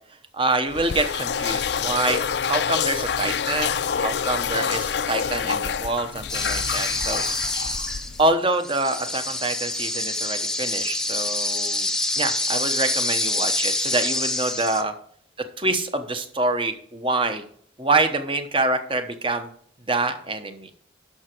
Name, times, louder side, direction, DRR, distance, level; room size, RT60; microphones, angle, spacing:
voice 1, 0.3-7.2 7.6-7.8 8.2-11.9 12.2-14.9 15.6-17.4 17.8-19.5 19.9-20.7, right 2 dB, 25° right, 8 dB, 1.0 m, -26 dB
sound 1, 0.7-8.3, left 7 dB, 60° left, 0.4 m, -27 dB
sound 2, 6.3-8.2 8.5-14.8, left 2 dB, 5° left, 0.6 m, -26 dB
11.5 x 6.2 x 4.5 m, 0.62 s
head